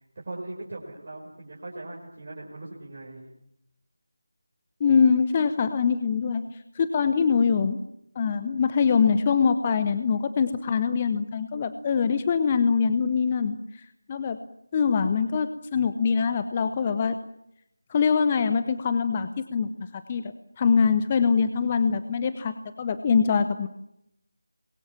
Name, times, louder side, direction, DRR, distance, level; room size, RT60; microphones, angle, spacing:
voice 1, 0.0-3.3, right 2 dB, 30° right, -3 dB, 5.7 m, -40 dB
voice 2, 4.8-6.4 6.7-7.8 8.1-14.4 14.7-17.2 17.9-23.7, left 6 dB, 20° left, 11 dB, 0.9 m, -23 dB
28.5 x 22.5 x 7.4 m, 0.79 s
figure-of-eight pair, 165°, 0 cm